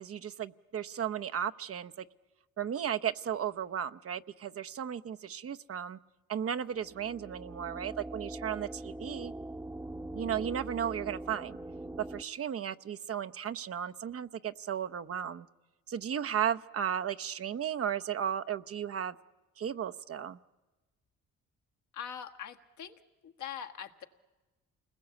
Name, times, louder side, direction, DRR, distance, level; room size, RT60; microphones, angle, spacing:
voice 1, 0.0-2.0 2.6-6.0 6.3-9.3 10.1-11.6 12.0-15.5 15.9-19.1 19.6-20.4, right 9 dB, 50° right, 10 dB, 0.8 m, -35 dB
sound 1, 6.7-12.2, right 1 dB, 10° right, 0.9 m, -42 dB
voice 2, 21.9-23.0 23.2-24.0, left 9 dB, 70° left, 5 dB, 1.7 m, -42 dB
29.0 x 20.5 x 8.3 m, 1.2 s
cardioid pair, 90°, 30 cm